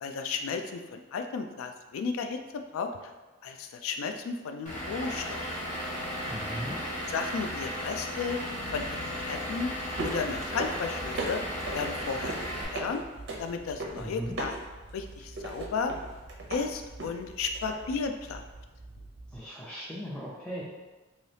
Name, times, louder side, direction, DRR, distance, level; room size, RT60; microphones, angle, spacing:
voice 1, 0.0-2.4 2.7-3.0 3.4-5.4 7.1-8.4 8.7-8.8 9.2-9.7 10.0-11.4 11.7-13.0 13.4-14.5 14.9-15.9 16.5-18.4, left 5 dB, 85° left, 6 dB, 0.3 m, -33 dB
Vehicle / Engine, 4.7-12.7, equal, 35° left, 0.9 m, -35 dB
voice 2, 6.3-6.8 14.0-14.3 19.3-20.6, equal, 5° left, -8 dB, 0.3 m, -38 dB
sound 1, 8.5-19.4, right 2 dB, 55° right, 0.5 m, -40 dB
2.7 x 2.7 x 3.2 m, 1.2 s
head